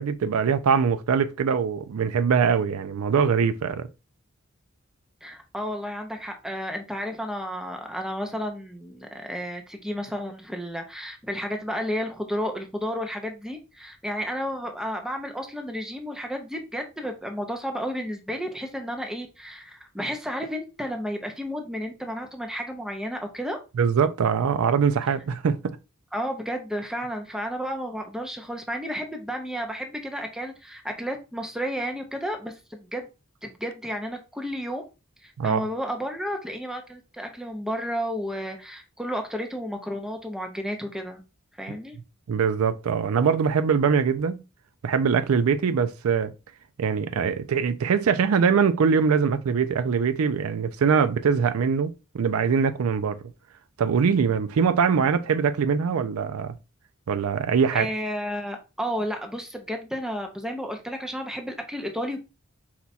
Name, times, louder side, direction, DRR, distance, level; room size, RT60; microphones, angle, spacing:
voice 1, 0.0-3.9 23.8-25.8 35.4-35.6 42.3-44.4 44.8-46.3 46.8-53.2 53.8-56.5 57.1-57.9, right 6 dB, 90° right, 0.4 m, -22 dB
voice 2, 5.2-23.6 25.1-25.2 26.1-33.1 33.4-34.8 35.2-41.2 41.6-42.0 57.7-62.2, equal, 5° right, 0.6 m, -32 dB
4.3 x 2.3 x 4.1 m
head